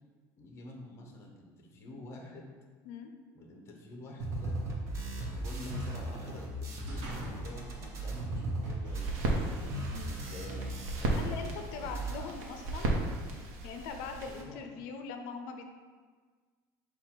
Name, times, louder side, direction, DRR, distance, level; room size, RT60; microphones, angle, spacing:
voice 1, 0.4-2.5 3.3-4.6 5.2-9.4 10.0-11.9 12.1-12.5 14.4-14.7, left 2 dB, 30° left, 1 dB, 0.7 m, -48 dB
sound 1, 4.2-11.5 11.7-12.2, right 2 dB, 35° right, 0.7 m, -37 dB
sound 2, 6.7-7.6 8.1-10.9, right 1 dB, 55° right, 1.0 m, -49 dB
sound 3, 9.0-14.4, right 2 dB, 85° right, 0.8 m, -35 dB
voice 2, 11.1-12.9 13.6-15.6, left 5 dB, 85° left, 5 dB, 0.5 m, -41 dB
5.3 x 2.3 x 4.3 m, 1.5 s
cardioid pair, 165°, 9 cm